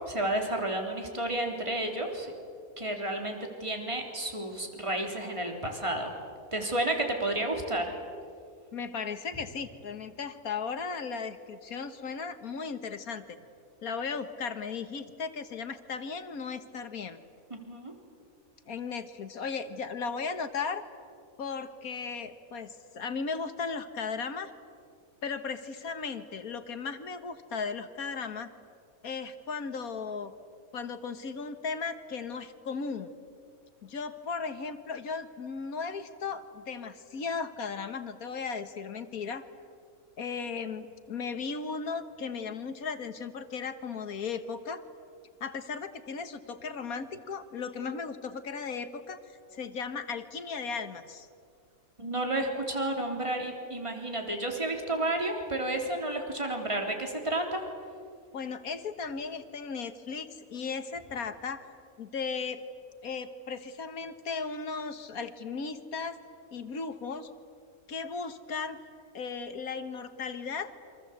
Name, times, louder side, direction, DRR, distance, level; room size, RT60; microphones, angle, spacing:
voice 1, 0.0-2.3 2.8-6.1 6.5-7.9 17.5-17.9 52.0-57.6, right 1 dB, 20° right, 2 dB, 3.6 m, -31 dB
voice 2, 8.7-13.4 13.8-17.2 18.7-20.8 21.4-24.5 25.2-28.5 29.0-30.3 30.7-33.1 33.8-39.4 40.2-44.8 45.4-51.3 52.7-52.8 58.3-61.6 62.0-62.6 63.0-66.2 66.5-67.3 67.9-68.8 69.1-70.7, left 5 dB, 75° left, 10 dB, 1.9 m, -36 dB
28.5 x 25.5 x 8.2 m, 2.3 s
omnidirectional pair, 1.5 m